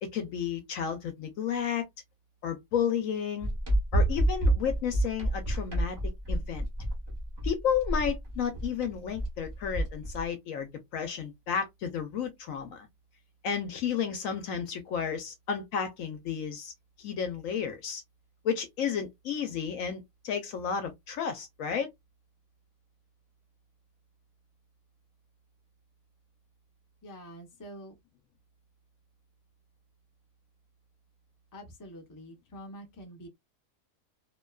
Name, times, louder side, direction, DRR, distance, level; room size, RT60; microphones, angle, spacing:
voice 1, 0.0-1.9 2.4-3.5 3.9-6.7 7.4-12.9 13.4-16.7 17.0-18.0 18.4-21.9, left 7 dB, 65° left, 0.9 m, -32 dB
sound 1, 3.4-10.2, right 1 dB, 25° right, 0.6 m, -28 dB
voice 2, 27.0-27.9 31.5-33.3, equal, 25° left, 0.4 m, -46 dB
2.7 x 2.2 x 2.2 m
omnidirectional pair, 1.6 m